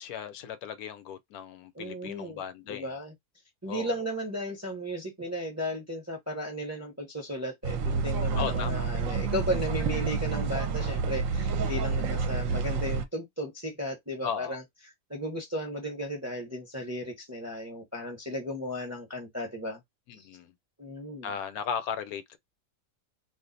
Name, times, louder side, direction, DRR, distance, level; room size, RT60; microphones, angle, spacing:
voice 1, 0.0-2.9 3.6-3.9 8.4-8.8 14.2-14.6 20.1-20.5 21.2-22.4, left 7 dB, 75° left, 1.0 m, -36 dB
voice 2, 1.7-2.4 2.7-3.1 3.6-14.6 15.1-19.8 20.2-20.3 20.8-21.3, equal, 15° right, 0.6 m, -35 dB
sound 1, 7.6-13.1, right 5 dB, 65° right, 0.9 m, -29 dB
2.5 x 2.4 x 3.8 m
omnidirectional pair, 1.6 m